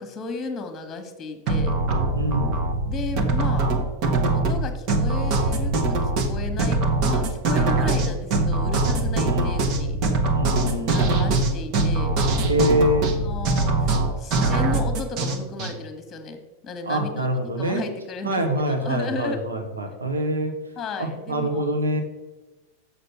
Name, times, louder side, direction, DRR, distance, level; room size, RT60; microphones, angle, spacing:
voice 1, 0.0-1.8 2.8-3.7 4.3-10.0 10.9-12.2 12.8-17.3 17.6-19.4 20.8-21.7, left 4 dB, 20° left, 7 dB, 1.4 m, -34 dB
sound 1, 1.5-15.7, right 2 dB, 40° right, 1.2 m, -22 dB
voice 2, 2.1-2.6 9.2-9.5 10.3-11.4 12.4-13.2 16.9-17.8 18.2-20.5 21.0-22.0, right 1 dB, 75° right, 4 dB, 1.5 m, -25 dB
7.3 x 6.6 x 5.8 m, 1.1 s
figure-of-eight pair, 90°, 0 cm